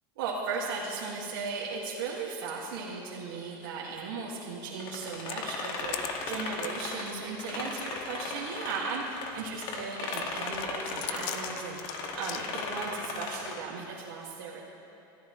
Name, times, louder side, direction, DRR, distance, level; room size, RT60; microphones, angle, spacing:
voice 1, 0.2-14.6, right 4 dB, 85° right, -5 dB, 2.1 m, -36 dB
sound 1, 4.8-9.3 9.6-13.7, left 3 dB, 45° left, 1.8 m, -37 dB
sound 2, 5.3-7.2 7.8-7.9 8.3-8.4 9.1-9.7 10.1-12.4, left 12 dB, 60° left, 0.8 m, -42 dB
22.5 x 14.0 x 3.2 m, 2.8 s
supercardioid pair, 150°, 11 cm